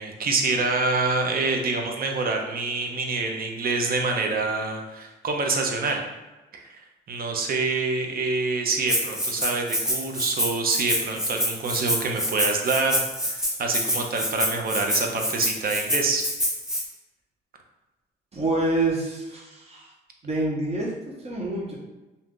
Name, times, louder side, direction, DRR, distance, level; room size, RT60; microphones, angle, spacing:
voice 1, 0.0-6.0 6.5-6.8 7.1-13.0 13.3-16.2, right 3 dB, 50° right, 3 dB, 0.6 m, -26 dB
Rattle (instrument), 8.9-16.8, equal, 5° right, 0.8 m, -26 dB
voice 2, 18.3-19.9 20.2-21.7, right 2 dB, 30° right, -4 dB, 1.1 m, -27 dB
2.7 x 2.4 x 3.6 m, 1.1 s
cardioid pair, 90°, 20 cm